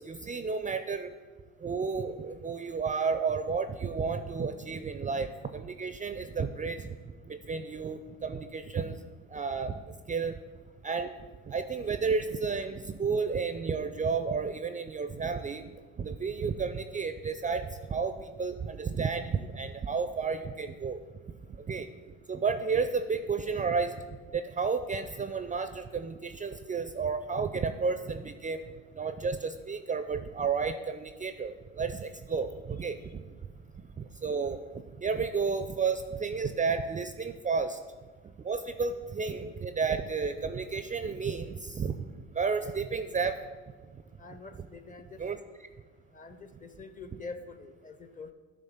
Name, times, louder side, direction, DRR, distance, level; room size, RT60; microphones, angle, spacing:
voice 1, 0.1-1.1 1.6-5.3 5.5-6.8 7.5-8.9 9.3-9.7 10.1-10.3 10.8-11.1 11.5-15.6 16.0-17.7 17.9-21.0 21.7-21.9 22.3-23.9 24.3-28.6 29.0-33.0 34.2-34.6 35.0-37.8 38.5-41.9 42.4-43.3 45.2-45.4, right 5 dB, 25° right, 10 dB, 0.4 m, -31 dB
voice 2, 44.2-45.5 46.1-48.3, left 4 dB, 25° left, 10 dB, 0.7 m, -46 dB
10.0 x 3.5 x 5.7 m, 1.4 s
hypercardioid pair, 60°, 34 cm